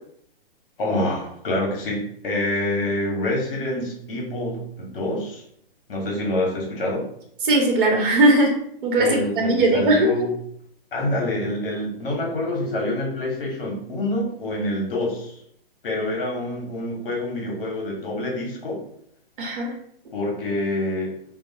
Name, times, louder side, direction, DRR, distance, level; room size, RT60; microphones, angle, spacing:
voice 1, 0.8-5.4 5.9-7.1 9.0-10.3 10.9-15.4 15.8-18.8 20.1-21.1, left 1 dB, 65° left, -1 dB, 1.1 m, -26 dB
voice 2, 7.4-8.5 8.8-10.3 19.4-19.7, right 1 dB, 60° right, 1 dB, 0.9 m, -19 dB
2.3 x 2.2 x 2.7 m, 0.69 s
hypercardioid pair, 150°, 30 cm